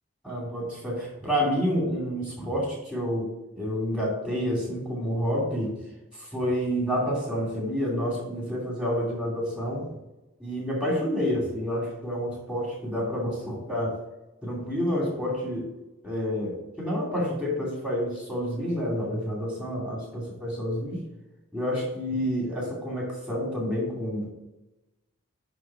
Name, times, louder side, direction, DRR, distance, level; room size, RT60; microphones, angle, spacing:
voice 1, 0.2-5.8 6.1-10.0 10.4-13.9 14.4-15.7 16.0-21.0 21.5-24.3, equal, 5° right, -4 dB, 2.5 m, -29 dB
9.9 x 3.6 x 4.8 m, 1.0 s
head